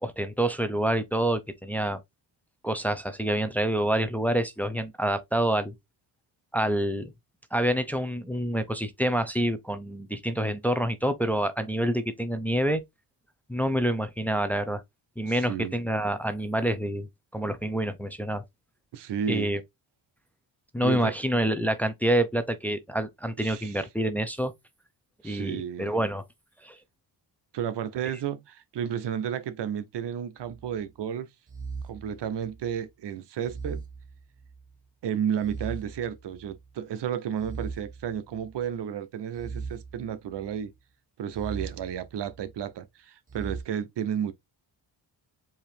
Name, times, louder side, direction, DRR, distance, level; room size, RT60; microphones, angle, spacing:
voice 1, 0.0-2.0 2.6-5.7 6.5-7.1 7.5-12.8 13.5-14.8 15.2-17.1 17.3-18.4 19.3-19.6 20.7-24.5 25.2-26.2 26.6-26.8, right 1 dB, 5° left, 0.6 m, -27 dB
voice 2, 15.3-15.8 18.9-19.5 20.8-21.1 23.4-23.8 25.2-25.9 27.5-31.3 31.8-33.8 35.0-40.7 41.2-44.3, right 9 dB, 60° right, 0.6 m, -32 dB
sound 1, 30.4-30.8 31.5-32.8 33.4-34.7 35.4-36.7 37.4-38.7 39.3-40.6 41.3-42.6 43.3-43.6, right 4 dB, 15° right, 1.1 m, -40 dB
4.6 x 2.8 x 3.3 m
cardioid pair, 80°, 48 cm